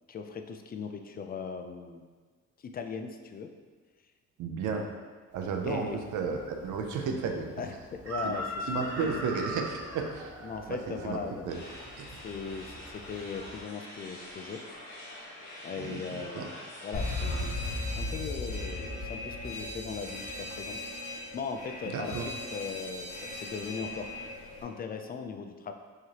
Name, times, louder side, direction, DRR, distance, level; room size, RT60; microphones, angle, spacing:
voice 1, 0.1-2.1 2.6-3.5 5.7-6.0 7.6-8.7 9.0-9.1 10.4-11.5 12.2-14.6 15.6-16.5 16.8-20.8 21.3-24.1 24.6-25.7, left 5 dB, 30° left, 6 dB, 0.4 m, -38 dB
voice 2, 4.4-4.9 5.3-7.5 8.2-8.3 8.7-10.3 10.7-11.2 11.4-11.6 12.0-12.2 15.8-16.5 21.8-22.3, right 5 dB, 80° right, 4 dB, 0.6 m, -33 dB
Chicken rooster, 5.3-13.6, equal, 50° right, 1.0 m, -42 dB
sound 1, 11.5-17.9, left 1 dB, 85° left, 1.2 m, -46 dB
Alarm, 16.9-24.6, left 2 dB, 70° left, 1.5 m, -37 dB
4.8 x 3.1 x 2.8 m, 1.4 s
cardioid pair, 90°, 30 cm